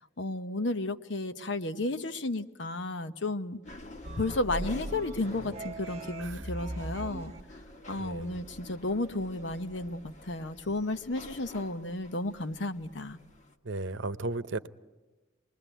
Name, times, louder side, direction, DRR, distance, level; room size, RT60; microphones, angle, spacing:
voice 1, 0.2-3.6 4.2-7.3 7.9-13.2, left 2 dB, 70° left, 10 dB, 1.0 m, -33 dB
sound 1, 3.6-13.5, left 1 dB, 40° left, 1.5 m, -50 dB
sound 2, 4.0-7.4, right 1 dB, 35° right, 1.3 m, -39 dB
voice 2, 8.0-8.4 13.6-14.7, right 2 dB, 75° right, 13 dB, 0.8 m, -35 dB
26.5 x 21.0 x 9.1 m, 1.2 s
head